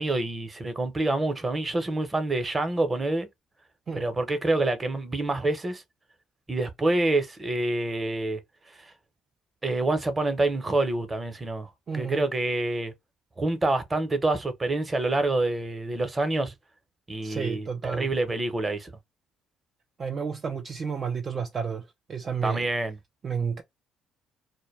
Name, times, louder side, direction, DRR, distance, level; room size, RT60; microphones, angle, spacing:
voice 1, 0.0-3.3 4.0-5.8 6.5-8.4 9.6-11.7 11.9-12.9 13.4-16.5 17.1-18.9 22.4-23.0, right 2 dB, 25° right, 0.8 m, -27 dB
voice 2, 11.9-12.3 17.2-18.1 20.0-22.7 23.2-23.6, right 6 dB, 45° right, 0.4 m, -31 dB
2.2 x 2.1 x 3.1 m
supercardioid pair, 75°, 0 cm